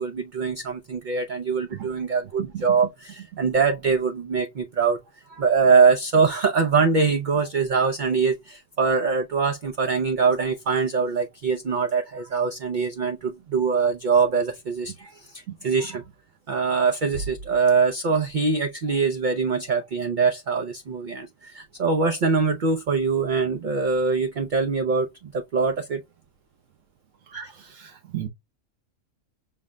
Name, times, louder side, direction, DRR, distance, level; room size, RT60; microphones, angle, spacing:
voice 1, 0.0-5.0 5.3-16.0 16.5-26.0 27.3-27.5, right 5 dB, 55° right, 0.5 m, -23 dB
voice 2, 27.6-28.3, right 12 dB, 75° right, 1.0 m, -34 dB
5.6 x 2.1 x 3.5 m
omnidirectional pair, 1.4 m